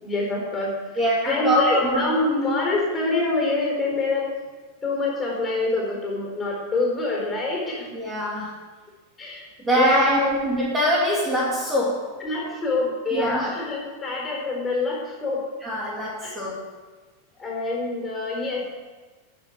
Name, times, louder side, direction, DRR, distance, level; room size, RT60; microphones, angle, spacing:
voice 1, 0.0-4.3 4.8-7.9 9.2-9.4 9.7-10.4 12.2-15.4 16.2-16.4 17.4-18.7, left 2 dB, 20° left, -2 dB, 4.4 m, -26 dB
voice 2, 1.0-2.1 7.9-8.5 9.6-12.1 13.1-13.5 15.6-16.6, equal, 15° right, -5 dB, 2.9 m, -23 dB
13.5 x 7.2 x 6.4 m, 1.3 s
figure-of-eight pair, 90°, 0 cm